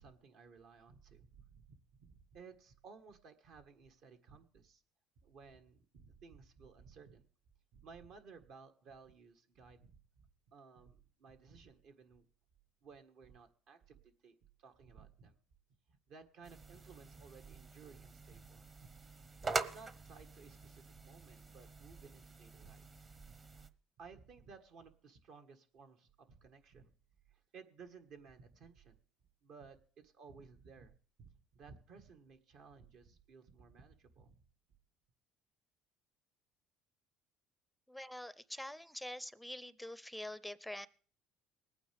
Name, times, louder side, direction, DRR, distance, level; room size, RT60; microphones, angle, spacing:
voice 1, 0.0-1.7 2.0-4.8 5.2-7.3 7.7-12.2 12.8-15.4 15.9-18.6 19.1-19.2 19.4-22.9 24.0-26.9 27.3-29.0 29.4-30.9 31.2-34.4, right 5 dB, 65° right, 6 dB, 1.5 m, -58 dB
sound 1, 16.4-23.7, right 3 dB, 30° right, 0.9 m, -45 dB
voice 2, 37.9-40.9, left 1 dB, ahead, 17 dB, 0.5 m, -45 dB
20.5 x 9.0 x 3.4 m, 0.43 s
supercardioid pair, 100°, 0 cm